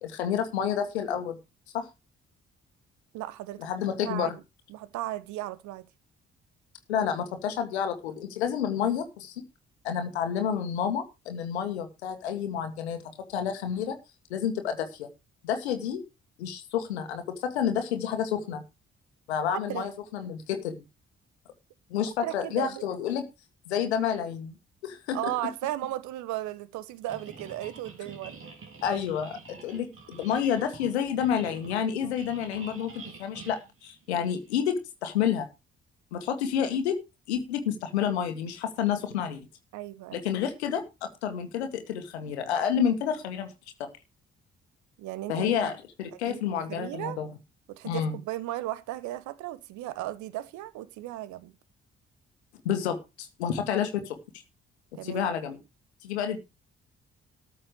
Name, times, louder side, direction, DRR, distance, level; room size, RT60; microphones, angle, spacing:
voice 1, 0.0-1.4 1.7-1.9 3.6-4.4 6.9-9.3 9.8-13.0 13.3-14.0 14.3-15.1 15.4-16.0 16.4-18.6 19.3-20.8 21.9-23.2 23.7-24.5 24.8-25.2 28.8-35.5 36.1-37.0 37.3-39.4 40.1-43.5 43.8-43.9 45.3-47.3 47.8-48.2 52.6-54.2 55.0-55.6 56.0-56.4, left 8 dB, 75° left, 1.8 m, -29 dB
voice 2, 3.1-3.7 4.0-4.3 4.7-5.9 19.7-19.9 22.2-22.8 25.1-28.4 32.0-32.1 39.7-40.2 45.0-45.7 46.3-47.2 47.7-51.5 54.9-55.2, right 15 dB, 60° right, 1.3 m, -35 dB
sound 1, 27.1-34.5, right 4 dB, 40° right, 3.9 m, -47 dB
13.5 x 6.7 x 6.6 m
figure-of-eight pair, 40°, 33 cm